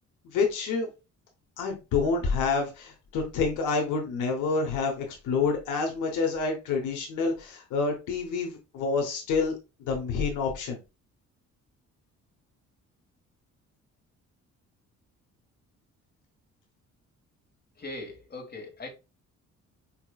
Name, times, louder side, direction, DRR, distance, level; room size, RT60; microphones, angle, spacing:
voice 1, 0.3-0.9 1.6-9.5 9.9-10.8, left 4 dB, 85° left, 1.0 m, -28 dB
voice 2, 17.8-18.9, left 2 dB, 35° left, 1.5 m, -40 dB
4.8 x 2.9 x 2.3 m
cardioid pair, 90°, 30 cm